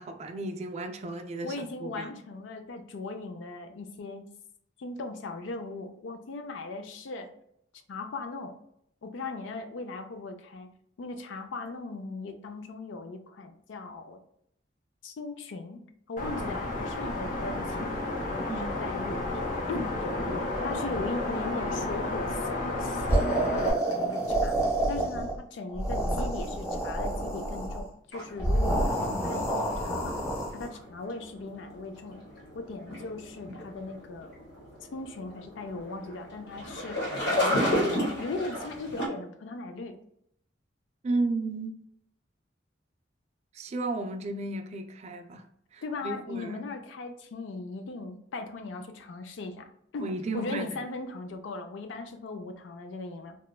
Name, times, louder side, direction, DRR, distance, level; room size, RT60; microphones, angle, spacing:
voice 1, 0.0-2.1 18.5-18.8 41.0-41.8 43.5-45.4 45.7-46.7 50.0-50.8, right 2 dB, 35° right, 6 dB, 0.3 m, -34 dB
voice 2, 1.4-4.2 4.8-7.3 7.9-8.5 9.0-10.7 11.0-14.2 15.0-18.0 18.3-19.4 19.7-20.1 20.6-23.2 23.5-24.6 24.9-30.2 30.5-32.2 32.5-34.3 34.9-37.1 37.4-40.0 45.8-50.1 50.3-53.4, left 3 dB, 85° left, 7 dB, 0.4 m, -38 dB
sound 1, 16.2-23.7, left 2 dB, 45° left, 0.7 m, -32 dB
sound 2, 23.1-25.4 25.7-27.8 28.4-30.7, right 1 dB, 15° left, 1.2 m, -28 dB
sound 3, 28.1-39.1, left 1 dB, 65° left, 1.1 m, -34 dB
2.9 x 2.2 x 2.2 m, 0.72 s
head